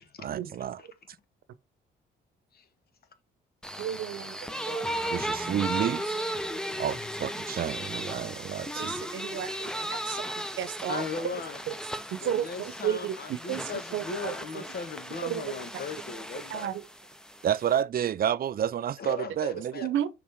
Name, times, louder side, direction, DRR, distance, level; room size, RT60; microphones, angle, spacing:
voice 1, 0.2-0.8 5.1-6.1 6.8-8.9 17.4-19.8, right 10 dB, 50° right, 0.5 m, -30 dB
sound 1, 3.6-17.8, equal, 5° left, 0.8 m, -36 dB
voice 2, 3.8-4.8 8.8-9.7 10.1-10.2 10.6-11.4 11.7-11.8 12.1-14.6 15.2-15.5 16.5-16.8 19.8-20.1, right 10 dB, 75° right, 0.9 m, -33 dB
voice 3, 10.9-11.6 12.2-16.7 19.0-19.9, left 5 dB, 50° left, 1.4 m, -37 dB
6.3 x 4.1 x 3.6 m
cardioid pair, 90°, 20 cm